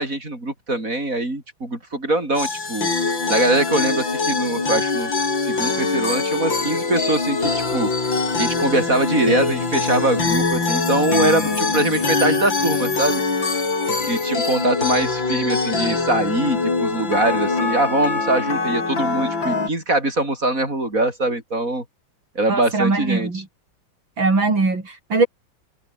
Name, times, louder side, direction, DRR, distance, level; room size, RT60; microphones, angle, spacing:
voice 1, 0.0-2.9 3.3-5.1 5.4-7.9 8.4-13.2 13.9-21.8 22.3-23.4, right 2 dB, 45° right, 8.4 m, -23 dB
sound 1, 2.4-19.7, left 3 dB, 80° left, 5.1 m, -23 dB
voice 2, 22.5-23.4 24.2-25.3, right 3 dB, 85° right, 5.6 m, -20 dB
omnidirectional pair, 2.0 m